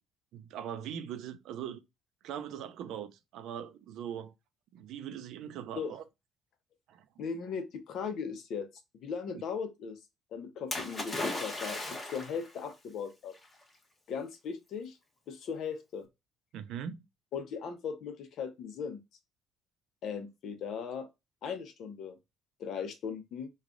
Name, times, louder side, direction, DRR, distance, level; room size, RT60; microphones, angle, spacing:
voice 1, 0.3-1.8 2.2-4.3 4.7-6.0 6.9-7.0 16.5-17.0, right 9 dB, 75° right, 0.5 m, -41 dB
voice 2, 7.2-8.7 8.9-10.0 10.3-13.3 14.1-15.0 15.3-16.1 17.3-19.0 20.0-21.1 21.4-22.2 22.6-23.5, left 6 dB, 60° left, 0.8 m, -38 dB
Splash splatter, 10.7-12.5 13.4-13.5, left 2 dB, 25° left, 1.2 m, -36 dB
3.2 x 2.4 x 3.7 m
cardioid pair, 105°, 0 cm